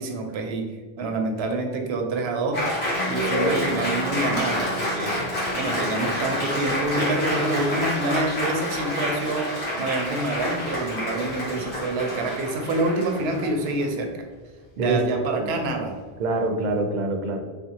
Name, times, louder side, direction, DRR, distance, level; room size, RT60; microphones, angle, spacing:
voice 1, 0.0-2.6 3.1-5.2 5.5-14.1 14.8-15.9, right 2 dB, 85° right, 4 dB, 0.8 m, -27 dB
Applause, 2.5-13.9, left 1 dB, 90° left, 1.3 m, -28 dB
Piano, 2.9-10.2, right 7 dB, 20° left, 1.1 m, -40 dB
voice 2, 14.8-15.5 16.2-17.4, right 2 dB, 55° right, 3 dB, 0.6 m, -25 dB
3.4 x 2.5 x 2.8 m, 1.4 s
omnidirectional pair, 1.0 m